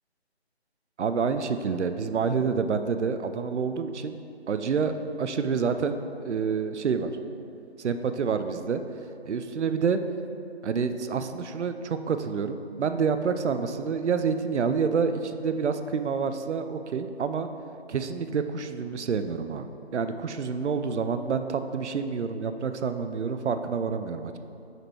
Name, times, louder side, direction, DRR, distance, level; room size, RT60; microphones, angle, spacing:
voice 1, 1.0-4.2 4.5-4.9 5.2-6.0 6.2-7.1 7.8-8.8 9.3-10.0 10.6-17.5 17.9-19.6 19.9-24.4, right 5 dB, 85° right, 9 dB, 0.5 m, -28 dB
6.6 x 4.3 x 4.5 m, 2.7 s
figure-of-eight pair, 180°, 34 cm